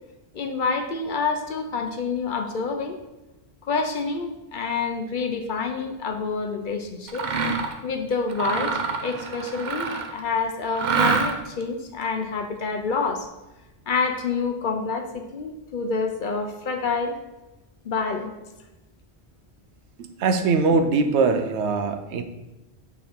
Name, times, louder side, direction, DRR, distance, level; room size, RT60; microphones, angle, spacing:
voice 1, 0.3-3.0 3.7-7.2 7.8-13.3 13.9-17.2 17.8-18.3, left 4 dB, 55° left, 5 dB, 0.7 m, -27 dB
Mechanisms, 7.1-7.8 8.3-10.2 10.7-11.6, right 4 dB, 50° right, 0.6 m, -26 dB
voice 2, 20.0-22.2, right 4 dB, 85° right, 7 dB, 0.9 m, -22 dB
8.4 x 3.6 x 3.6 m, 1.0 s
omnidirectional pair, 1.1 m